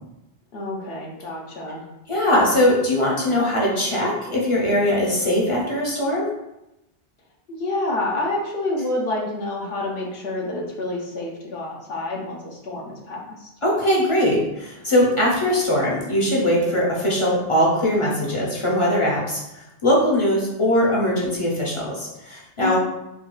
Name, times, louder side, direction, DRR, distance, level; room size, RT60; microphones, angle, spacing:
voice 1, 0.5-1.8 7.5-13.5 22.6-22.8, left 2 dB, 65° left, -2 dB, 0.9 m, -28 dB
voice 2, 2.1-6.3 13.6-19.4 19.8-22.8, left 1 dB, 35° left, -4 dB, 0.7 m, -21 dB
4.3 x 2.3 x 2.3 m, 0.91 s
omnidirectional pair, 1.1 m